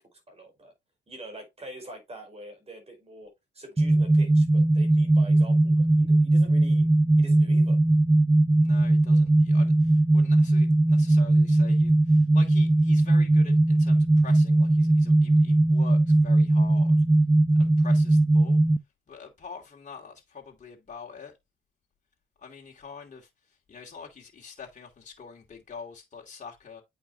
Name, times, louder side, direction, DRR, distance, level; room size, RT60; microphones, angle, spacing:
voice 1, 0.1-0.7 1.1-6.8 7.2-7.8, right 1 dB, 30° right, 4.7 m, -45 dB
sound 1, 3.8-18.8, right 2 dB, 10° right, 0.5 m, -20 dB
voice 2, 8.6-17.0 17.6-18.6 19.1-21.3 22.4-23.3 23.7-26.8, left 6 dB, 40° left, 2.6 m, -45 dB
8.8 x 5.1 x 2.8 m
cardioid pair, 90°, 20 cm